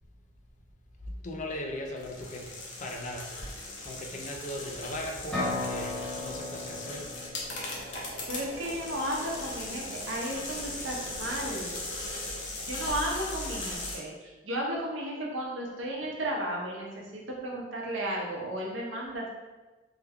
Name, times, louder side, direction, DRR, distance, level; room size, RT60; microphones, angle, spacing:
voice 1, 1.0-3.3 3.8-7.1, left 1 dB, 40° left, 2 dB, 0.4 m, -38 dB
sound 1, 2.0-14.0, left 2 dB, 75° left, 0.8 m, -39 dB
sound 2, 4.6-12.4, right 2 dB, 30° right, 0.4 m, -47 dB
sound 3, 5.3-9.1, left 2 dB, 5° left, 0.7 m, -37 dB
voice 2, 8.3-11.8 12.7-19.3, right 1 dB, 80° right, -2 dB, 0.7 m, -34 dB
3.2 x 2.2 x 3.5 m, 1.2 s
head